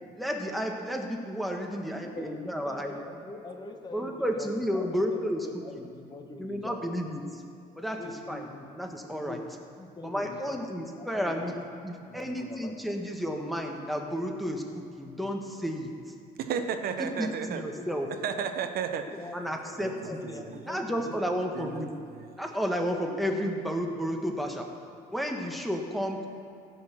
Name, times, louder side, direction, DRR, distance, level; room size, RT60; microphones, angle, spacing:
voice 1, 0.2-2.9 3.9-5.5 6.4-7.3 7.8-8.0 8.3-8.4 8.7-9.4 10.0-15.9 17.0-18.1 19.3-20.2 20.7-21.9 22.4-24.7 25.1-26.2, equal, ahead, 2 dB, 1.2 m, -32 dB
voice 2, 1.7-7.0 7.9-8.7 9.2-9.5 9.8-10.7 11.0-11.6 11.9-13.0 17.4-17.9 19.0-21.4, left 2 dB, 25° left, 4 dB, 1.2 m, -44 dB
voice 3, 16.4-17.6 18.2-19.1 19.8-19.9 20.2-20.3 21.5-21.8 22.1-22.3, right 7 dB, 65° right, 8 dB, 0.8 m, -32 dB
15.5 x 5.6 x 6.1 m, 2.5 s
cardioid pair, 110°, 17 cm